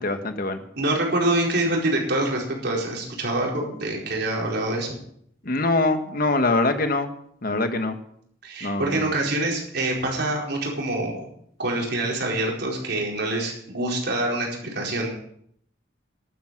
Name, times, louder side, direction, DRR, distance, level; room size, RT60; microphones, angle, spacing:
voice 1, 0.0-0.6 5.4-7.1 7.4-8.0 8.6-9.1, left 2 dB, 50° left, 8 dB, 1.5 m, -23 dB
voice 2, 0.7-5.0 8.4-11.1 11.6-15.1, right 1 dB, 60° right, -1 dB, 4.6 m, -25 dB
12.0 x 9.9 x 7.6 m, 0.67 s
head